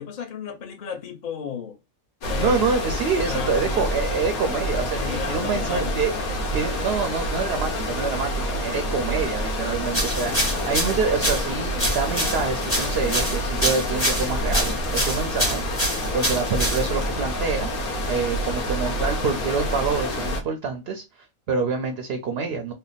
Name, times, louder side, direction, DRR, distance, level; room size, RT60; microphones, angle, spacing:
voice 1, 0.0-1.8 2.3-2.8 3.2-3.8 4.5-4.6 5.0-6.4, left 7 dB, 45° left, 0.7 m, -34 dB
sound 1, 2.2-20.4, left 1 dB, 85° left, 1.3 m, -27 dB
voice 2, 2.4-6.1 6.5-8.3 8.6-10.4 10.6-15.6 16.1-17.7 18.1-22.7, right 5 dB, 65° right, 0.6 m, -26 dB
sound 2, 9.9-17.1, equal, 10° left, 0.9 m, -27 dB
3.2 x 2.1 x 3.9 m
omnidirectional pair, 1.5 m